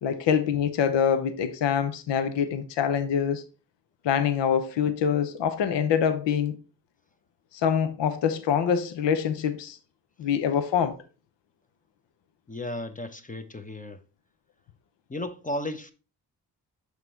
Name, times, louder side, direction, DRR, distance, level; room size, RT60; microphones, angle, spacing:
voice 1, 0.0-3.4 4.0-6.6 7.5-9.8 10.2-11.0, left 8 dB, 75° left, 0.8 m, -25 dB
voice 2, 12.5-14.0 15.1-15.9, left 1 dB, 20° left, 0.8 m, -34 dB
6.0 x 4.1 x 4.4 m
supercardioid pair, 45°, 43 cm